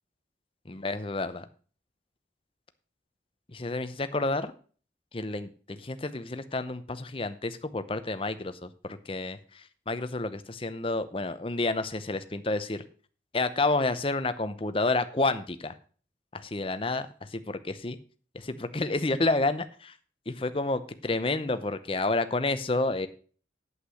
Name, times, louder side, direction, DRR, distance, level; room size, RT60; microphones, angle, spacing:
voice 1, 0.7-1.4 3.5-4.5 5.1-12.8 13.3-15.8 16.3-18.0 18.3-19.9 20.3-23.1, left 2 dB, 30° left, 11 dB, 0.7 m, -30 dB
8.6 x 8.2 x 6.4 m, 0.42 s
head